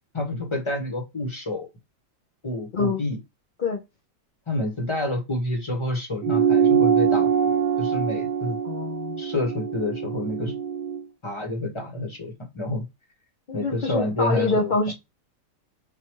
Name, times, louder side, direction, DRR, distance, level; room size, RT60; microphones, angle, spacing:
voice 1, 0.1-1.7 2.4-3.2 4.5-7.5 7.8-8.6 9.2-10.5 11.2-12.8 13.5-14.7, left 1 dB, 20° left, 1 dB, 1.3 m, -28 dB
sound 1, 6.2-11.0, right 7 dB, 85° right, 1.2 m, -23 dB
voice 2, 8.6-9.2 13.5-14.9, left 4 dB, 45° left, 0 dB, 0.7 m, -25 dB
4.0 x 2.7 x 3.0 m, 0.21 s
omnidirectional pair, 1.8 m